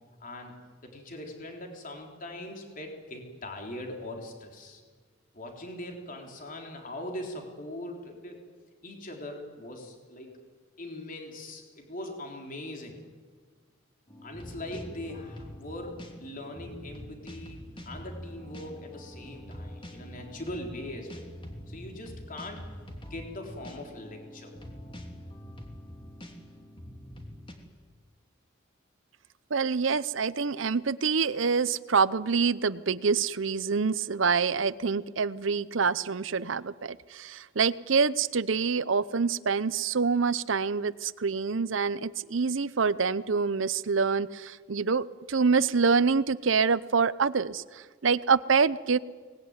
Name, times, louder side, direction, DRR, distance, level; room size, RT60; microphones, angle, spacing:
voice 1, 0.2-4.8 5.3-8.4 8.8-10.4 10.8-13.0 14.2-21.3 21.7-22.7 23.0-24.5, left 1 dB, 45° left, 2 dB, 3.8 m, -41 dB
sound 1, 14.1-27.5, equal, 25° left, 3.1 m, -44 dB
voice 2, 29.5-49.0, right 5 dB, 70° right, 17 dB, 0.7 m, -26 dB
24.0 x 19.5 x 9.7 m, 1.5 s
head